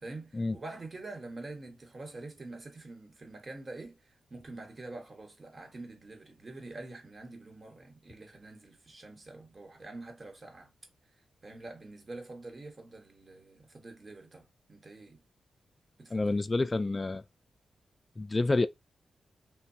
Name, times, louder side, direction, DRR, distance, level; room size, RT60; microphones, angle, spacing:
voice 1, 0.0-10.7 11.4-15.2 16.0-16.4, right 2 dB, 45° right, 1.2 m, -46 dB
voice 2, 16.1-17.2 18.2-18.7, left 2 dB, 35° left, 0.3 m, -28 dB
3.0 x 2.2 x 2.7 m
supercardioid pair, 45°, 0 cm